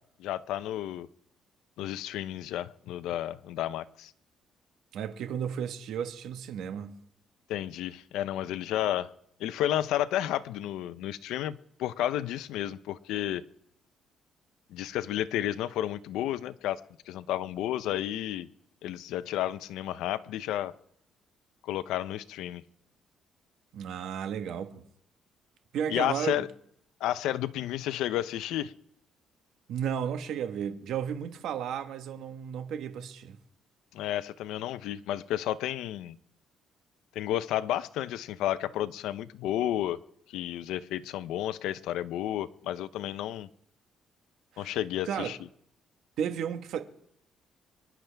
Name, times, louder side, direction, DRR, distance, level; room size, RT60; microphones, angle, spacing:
voice 1, 0.2-1.1 1.8-4.1 7.5-9.1 9.4-13.4 14.7-16.8 17.1-18.5 18.8-20.7 21.6-22.6 25.9-26.5 27.0-28.7 33.9-36.2 37.1-40.0 40.3-43.5 44.6-45.4, left 12 dB, 90° left, 0.6 m, -32 dB
voice 2, 4.9-6.9 23.7-24.8 25.7-26.5 29.7-33.4 44.5-44.7 45.0-45.3 46.2-46.8, right 8 dB, 75° right, 1.3 m, -33 dB
25.5 x 10.5 x 3.4 m
cardioid pair, 105°, 0 cm